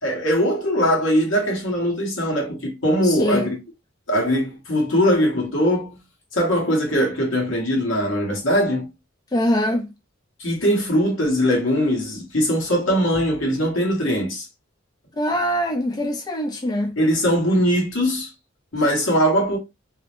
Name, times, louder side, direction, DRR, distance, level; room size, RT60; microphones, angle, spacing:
voice 1, 0.0-3.6 4.1-6.0 6.3-8.9 10.4-14.5 17.0-18.3 18.7-19.6, equal, 75° left, 1.2 m, -21 dB
voice 2, 3.0-3.5 9.3-9.9 15.1-17.0, equal, 20° left, 0.3 m, -23 dB
2.6 x 2.0 x 2.9 m
head